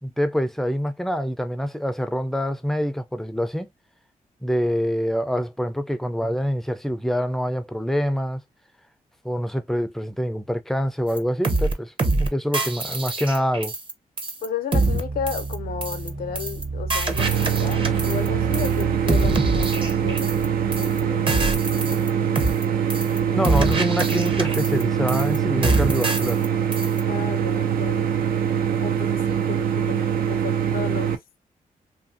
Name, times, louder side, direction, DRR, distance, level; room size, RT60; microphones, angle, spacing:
voice 1, 0.0-3.7 4.4-8.4 9.2-13.7 23.3-26.4, equal, ahead, 0.4 m, -25 dB
sound 1, 11.2-11.3 11.4-11.7 12.0-12.3 12.5-13.9 14.2-14.5 14.7-15.0 15.3-15.5 15.8-16.1 16.4-16.6 16.9-18.3 18.5-18.8 19.1-20.5 20.7-21.0 21.3-22.1 22.4-22.6 22.9-23.2 23.4-24.8 25.1-25.4 25.6-26.5 26.7-27.0, right 2 dB, 35° right, 0.7 m, -24 dB
voice 2, 14.4-22.5 27.1-28.1 28.8-31.2, left 8 dB, 90° left, 0.6 m, -34 dB
sound 2, 14.7-21.9, right 4 dB, 55° right, 1.3 m, -34 dB
sound 3, 17.2-31.2, right 8 dB, 85° right, 0.4 m, -23 dB
2.7 x 2.6 x 2.5 m
cardioid pair, 80°, 15 cm